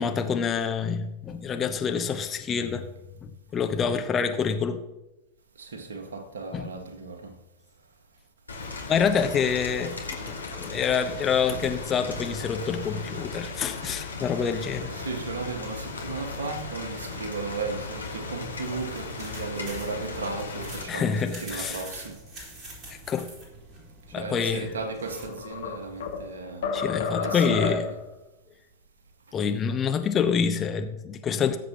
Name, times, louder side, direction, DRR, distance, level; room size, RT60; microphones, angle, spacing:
voice 1, 0.0-2.9 3.2-4.8 6.5-6.6 8.9-10.2 10.5-14.9 20.9-21.8 23.1-23.3 24.1-24.7 26.7-27.9 29.3-31.6, left 6 dB, 25° left, 1.0 m, -27 dB
voice 2, 5.6-7.3 10.5-10.6 11.5-11.7 14.9-22.2 24.2-26.7 27.1-27.9, right 3 dB, 65° right, 1.7 m, -35 dB
Rain, 8.5-20.8, left 3 dB, 75° left, 1.7 m, -37 dB
sound 1, 18.5-26.3, right 1 dB, 25° right, 4.3 m, -45 dB
sound 2, 24.9-26.3 26.6-28.0, left 5 dB, 60° left, 1.9 m, -30 dB
19.0 x 7.5 x 3.0 m
figure-of-eight pair, 90°, 0 cm